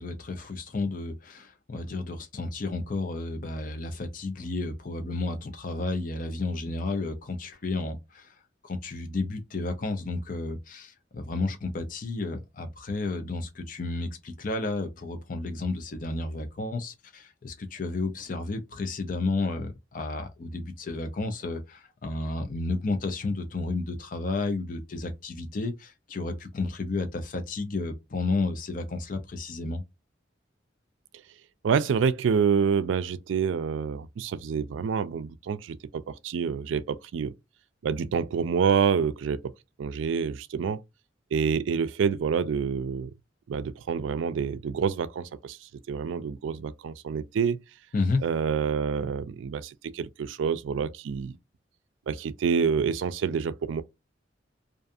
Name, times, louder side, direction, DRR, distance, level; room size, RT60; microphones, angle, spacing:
voice 1, 0.0-8.3 8.6-29.8 47.9-48.2, left 3 dB, 45° left, 0.5 m, -32 dB
voice 2, 31.6-37.3 37.8-39.4 39.8-40.8 41.3-43.1 43.5-47.6 48.2-51.4 52.1-53.8, right 6 dB, 80° right, 0.3 m, -27 dB
2.5 x 2.4 x 2.5 m
head